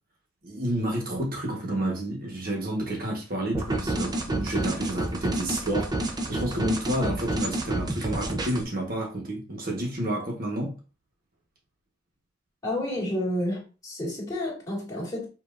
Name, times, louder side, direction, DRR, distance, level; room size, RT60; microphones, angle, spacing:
voice 1, 0.4-10.7, right 1 dB, 50° right, 1.2 m, -30 dB
sound 1, 3.5-8.6, right 2 dB, 20° right, 0.6 m, -29 dB
voice 2, 12.6-15.3, left 1 dB, 20° left, 2.0 m, -30 dB
5.3 x 2.7 x 2.5 m
head